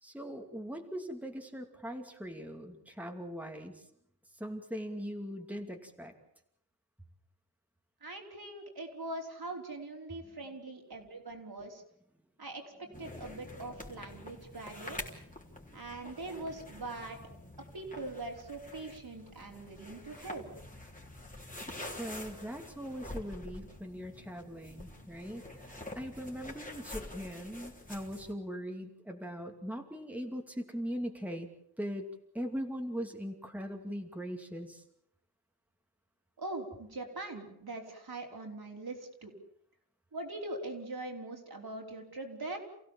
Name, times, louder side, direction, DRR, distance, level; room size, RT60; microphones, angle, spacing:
voice 1, 0.0-3.9 4.4-6.1 22.0-31.5 31.8-32.1 32.3-34.8, equal, 5° right, 3 dB, 2.6 m, -40 dB
voice 2, 8.0-11.8 12.4-15.0 15.7-17.2 17.7-20.5 36.4-39.3 40.1-42.6, right 2 dB, 65° right, 1 dB, 4.8 m, -42 dB
sound 1, 12.9-28.3, left 1 dB, 20° left, 3.7 m, -47 dB
28.5 x 16.0 x 7.4 m, 0.73 s
wide cardioid pair, 75°, 40 cm